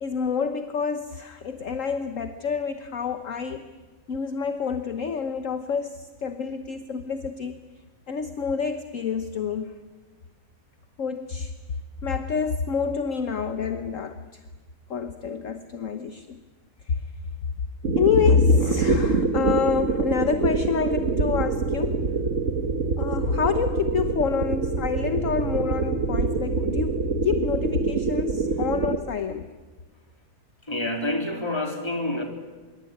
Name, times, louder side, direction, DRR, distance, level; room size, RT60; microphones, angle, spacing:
voice 1, 0.0-3.7 4.1-7.6 8.1-9.7 11.0-11.5 12.0-14.4 14.9-16.4 16.9-17.1 18.0-22.0 23.0-29.5, left 6 dB, 55° left, 9 dB, 1.4 m, -27 dB
sound 1, 17.8-29.0, right 3 dB, 50° right, 1.6 m, -25 dB
voice 2, 30.7-32.2, left 1 dB, 15° left, 3 dB, 3.6 m, -27 dB
25.0 x 23.0 x 9.5 m, 1.3 s
omnidirectional pair, 1.7 m